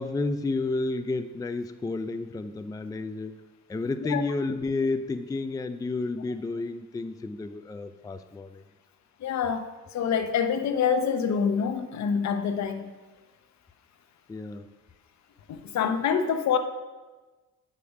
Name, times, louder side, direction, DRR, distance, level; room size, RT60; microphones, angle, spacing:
voice 1, 0.0-3.4 3.7-8.6 14.3-14.7, left 3 dB, 10° left, 10 dB, 0.4 m, -31 dB
voice 2, 9.2-9.7 9.9-12.8 15.5-16.6, left 7 dB, 65° left, 8 dB, 0.8 m, -26 dB
8.2 x 5.1 x 5.3 m, 1.2 s
cardioid pair, 90°, 30 cm